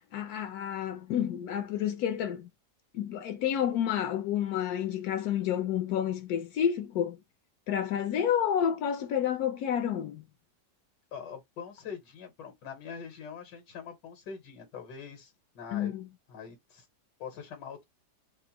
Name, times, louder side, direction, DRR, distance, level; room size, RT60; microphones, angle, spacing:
voice 1, 0.1-2.5 2.9-7.2 7.7-10.2 15.7-16.0, left 9 dB, 70° left, 1.0 m, -30 dB
voice 2, 11.1-15.9 16.3-16.8 17.2-17.8, left 6 dB, 90° left, 1.7 m, -43 dB
4.3 x 2.1 x 2.9 m
omnidirectional pair, 1.8 m